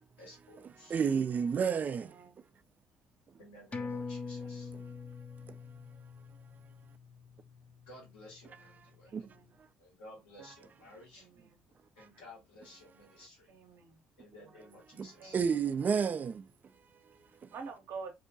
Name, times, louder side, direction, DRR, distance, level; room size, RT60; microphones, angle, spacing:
voice 1, 0.2-1.0 3.4-4.7 7.9-9.1 9.8-11.3 12.0-13.5 14.2-15.4, left 1 dB, 85° left, 1.3 m, -54 dB
voice 2, 0.9-2.2 5.5-5.6 9.1-9.3 15.0-15.1 15.3-16.5, right 6 dB, 40° right, 0.3 m, -30 dB
voice 3, 2.0-2.4 4.4-4.9 9.0-9.5 11.2-11.6 13.5-14.0 15.2-15.7 17.3-18.1, right 5 dB, 65° right, 0.7 m, -48 dB
sound 1, 3.7-8.7 9.0-9.1, left 4 dB, 30° left, 0.5 m, -44 dB
2.7 x 2.1 x 2.7 m
hypercardioid pair, 55°, 4 cm